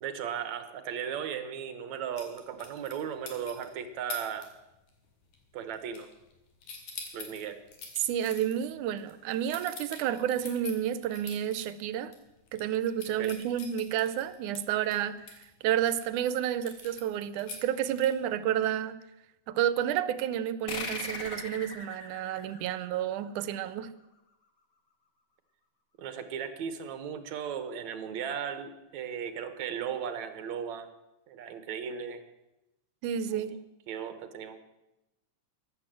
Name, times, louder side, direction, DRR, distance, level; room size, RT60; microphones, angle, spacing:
voice 1, 0.0-4.5 5.5-6.1 7.1-7.6 13.2-13.3 26.0-30.9 31.3-32.2 33.4-33.6 33.9-34.6, right 8 dB, 70° right, 10 dB, 2.4 m, -36 dB
sound 1, 2.2-3.7 4.1-4.5 4.8-5.1 5.3-6.3 6.6-11.7 12.1-12.2 12.5-16.0 16.6-18.3, left 4 dB, 90° left, 4.0 m, -44 dB
voice 2, 8.0-12.1 12.5-15.2 15.6-19.0 19.5-23.9 33.0-33.6, right 10 dB, 90° right, 15 dB, 2.3 m, -30 dB
sound 2, 20.7-23.7, left 3 dB, 35° left, 1.8 m, -40 dB
14.5 x 11.0 x 7.6 m, 0.94 s
omnidirectional pair, 3.4 m